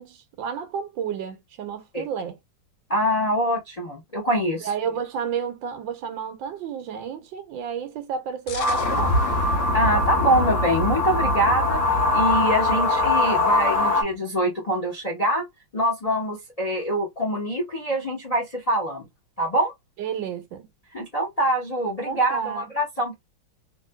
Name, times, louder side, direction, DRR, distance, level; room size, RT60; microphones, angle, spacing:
voice 1, 0.0-2.4 4.6-9.4 20.0-20.7 22.0-22.7, right 7 dB, 75° right, 1.4 m, -31 dB
voice 2, 2.9-4.7 9.7-11.8 12.1-15.4 15.7-19.1 19.4-19.7 20.9-23.1, equal, 85° left, 0.3 m, -24 dB
sound 1, 8.5-14.0, left 1 dB, 70° left, 1.2 m, -28 dB
sound 2, 8.6-14.0, left 2 dB, 30° left, 0.7 m, -23 dB
3.3 x 3.0 x 2.2 m
omnidirectional pair, 2.2 m